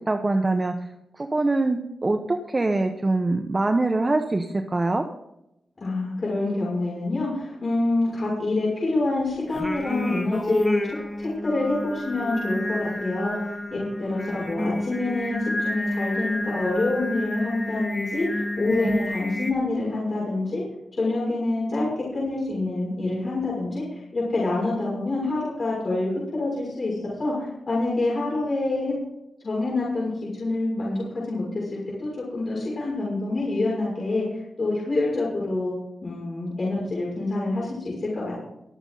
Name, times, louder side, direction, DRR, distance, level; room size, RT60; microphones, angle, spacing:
voice 1, 0.1-0.7 1.2-5.0 18.7-19.0, right 2 dB, 25° right, 4 dB, 1.1 m, -24 dB
voice 2, 5.8-10.8 11.2-13.5 14.0-20.6 21.0-26.9 27.2-28.9 29.4-35.8 36.0-38.4, left 2 dB, 40° left, -6 dB, 6.7 m, -26 dB
Singing, 9.5-19.5, left 1 dB, 15° left, 1.8 m, -30 dB
23.0 x 8.0 x 4.1 m, 0.83 s
wide cardioid pair, 115°, 0 cm